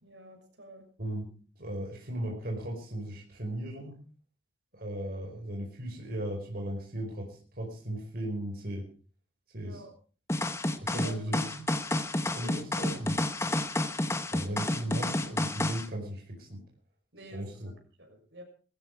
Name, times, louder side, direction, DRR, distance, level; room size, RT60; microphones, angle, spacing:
voice 1, 0.0-0.8 9.5-9.9 10.9-11.1 12.3-12.6 17.1-17.4 18.0-18.4, right 1 dB, 80° right, 4 dB, 6.3 m, -47 dB
voice 2, 1.0-4.0 4.7-8.9 9.5-9.8 10.8-11.5 12.3-13.2 14.3-16.6 17.3-17.7, right 1 dB, 55° right, 0 dB, 5.2 m, -37 dB
sound 1, 10.3-15.9, left 1 dB, 15° left, 1.2 m, -30 dB
19.5 x 14.5 x 4.8 m, 0.39 s
head